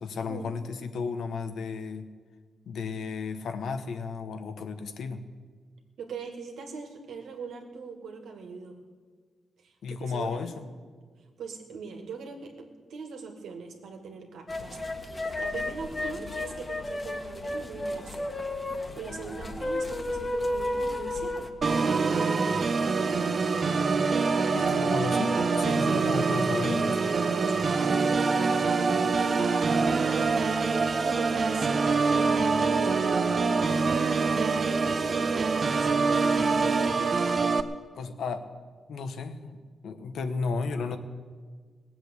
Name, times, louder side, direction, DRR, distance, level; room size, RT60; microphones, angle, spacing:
voice 1, 0.0-2.1 2.7-5.2 9.8-10.7 24.5-27.0 38.0-38.4 38.9-41.0, left 4 dB, 80° left, 8 dB, 1.2 m, -33 dB
voice 2, 6.0-8.7 9.6-10.5 11.4-15.0 15.4-18.2 19.0-21.5 22.7-23.5 27.4-30.5 31.0-33.1 34.3-36.2, right 5 dB, 85° right, 3 dB, 2.1 m, -41 dB
sound 1, 14.5-21.5, left 1 dB, 25° left, 1.5 m, -33 dB
Organ, 21.6-37.6, right 4 dB, 45° right, 0.8 m, -25 dB
18.0 x 7.7 x 8.2 m, 1.5 s
cardioid pair, 80°, 0 cm